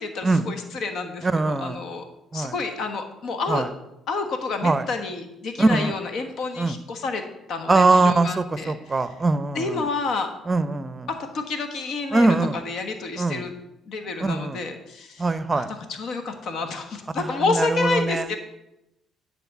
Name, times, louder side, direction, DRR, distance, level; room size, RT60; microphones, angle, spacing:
voice 1, 0.0-2.0 2.3-3.6 4.1-9.0 9.5-10.3 11.1-13.5 13.9-18.4, left 4 dB, 65° left, 6 dB, 1.3 m, -29 dB
voice 2, 1.2-1.8 2.3-2.5 3.5-3.7 4.6-4.8 5.6-5.9 6.6-6.7 7.7-9.8 10.5-11.1 12.1-12.6 13.2-13.5 14.2-14.6 15.2-15.7 17.2-18.3, right 3 dB, 30° right, 14 dB, 0.6 m, -22 dB
10.0 x 4.2 x 7.0 m, 0.89 s
hypercardioid pair, 55°, 0 cm